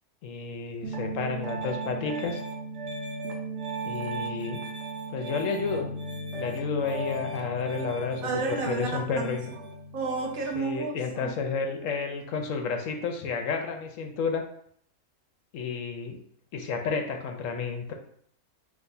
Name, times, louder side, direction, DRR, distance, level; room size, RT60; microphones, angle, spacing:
voice 1, 0.2-2.4 3.8-4.6 5.1-5.9 6.4-9.5 10.5-14.4 15.5-16.2 16.5-17.9, left 5 dB, 70° left, 4 dB, 1.0 m, -31 dB
Piano, 0.8-10.5, right 2 dB, 60° right, 1.1 m, -36 dB
voice 2, 8.2-9.6 9.9-11.3, right 4 dB, 75° right, 1 dB, 1.3 m, -32 dB
5.8 x 2.8 x 2.7 m, 0.65 s
omnidirectional pair, 1.5 m